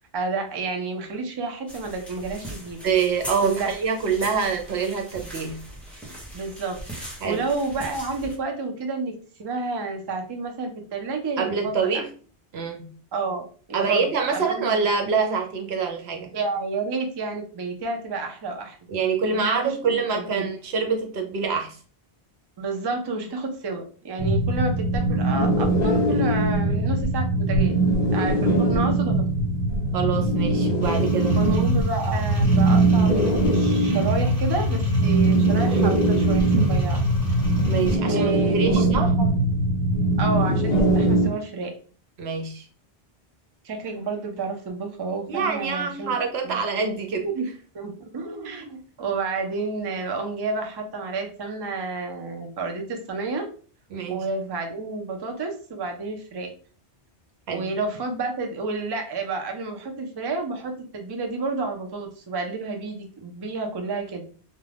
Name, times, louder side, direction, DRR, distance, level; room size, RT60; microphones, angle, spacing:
voice 1, 0.1-2.8 3.4-3.7 6.3-12.0 13.1-13.4 13.7-14.8 16.3-18.8 19.3-20.5 22.6-27.8 28.1-29.2 31.4-37.0 38.0-39.3 40.2-41.7 43.6-46.1 46.4-46.6 47.2-47.5 47.7-53.5 54.1-56.5 57.5-64.2, right 3 dB, 40° right, 3 dB, 0.4 m, -30 dB
sound 1, 1.7-8.4, right 1 dB, ahead, 0.7 m, -40 dB
voice 2, 2.8-5.6 7.2-7.4 11.4-12.1 12.5-12.9 13.7-16.3 18.9-21.8 29.9-31.4 37.7-39.1 42.2-42.7 45.3-47.3 53.9-54.2 57.5-57.7, right 5 dB, 75° right, 3 dB, 0.9 m, -25 dB
sound 2, 24.2-41.3, right 2 dB, 45° left, 0.8 m, -21 dB
sound 3, 30.8-38.0, equal, 15° right, 1.1 m, -29 dB
2.4 x 2.2 x 3.2 m, 0.41 s
omnidirectional pair, 1.1 m